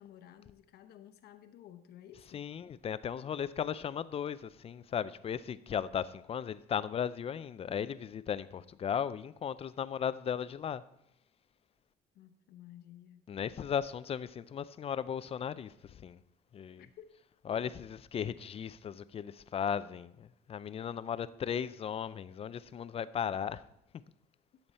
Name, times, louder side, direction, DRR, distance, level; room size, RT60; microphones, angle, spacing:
voice 1, 0.0-2.4 12.1-13.2 16.8-17.2, left 11 dB, 70° left, 0.9 m, -54 dB
voice 2, 2.3-10.8 13.3-16.2 16.5-16.8 17.5-23.6, left 8 dB, 35° left, 0.4 m, -36 dB
12.0 x 7.1 x 4.2 m
cardioid pair, 110°, 17 cm